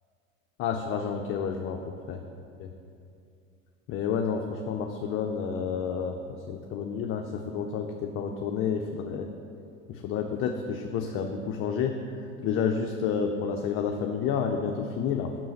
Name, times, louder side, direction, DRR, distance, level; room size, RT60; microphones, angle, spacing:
voice 1, 0.6-2.2 2.6-2.7 3.9-9.3 9.9-12.0 12.4-15.4, left 6 dB, 35° left, 4 dB, 0.4 m, -30 dB
5.9 x 4.6 x 6.4 m, 2.5 s
hypercardioid pair, 90°, 41 cm